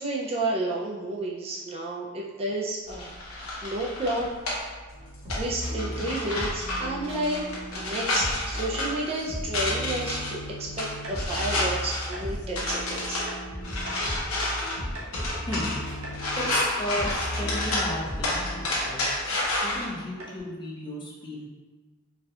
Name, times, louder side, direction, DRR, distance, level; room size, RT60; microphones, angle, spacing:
voice 1, 0.0-4.3 5.3-7.4 7.7-13.2, right 2 dB, 30° right, -3 dB, 0.4 m, -31 dB
sound 1, 2.9-19.9, left 1 dB, 90° left, 0.9 m, -31 dB
sound 2, 4.9-18.6, equal, 60° right, 1.4 m, -36 dB
sound 3, 11.0-11.2 11.6-11.7 12.1-12.3 12.7-12.8 13.3-13.4 13.9-14.0 14.4-14.6 14.9-15.1 15.5-16.2 16.6-16.7 17.1-17.2 17.7-17.9 18.3-18.4 18.8-19.0 19.4-19.6 19.9-20.0 20.2-20.4, right 1 dB, 85° right, 0.8 m, -40 dB
voice 2, 16.4-19.0 19.6-21.5, left 1 dB, 25° left, -4 dB, 0.6 m, -34 dB
4.0 x 2.3 x 2.7 m, 1.3 s
head